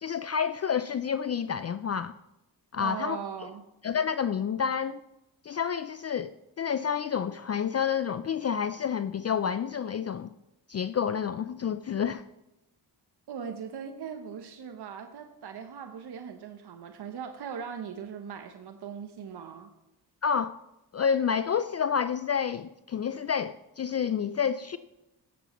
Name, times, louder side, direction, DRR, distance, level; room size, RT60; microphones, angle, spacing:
voice 1, 0.0-2.1 2.7-3.2 3.8-5.0 5.4-10.3 10.7-12.2 20.2-20.6 20.9-24.8, left 7 dB, 40° left, 0.4 m, -29 dB
voice 2, 2.8-3.6 13.3-19.7, right 7 dB, 65° right, 0.9 m, -39 dB
16.5 x 7.0 x 3.1 m
cardioid pair, 60°, 43 cm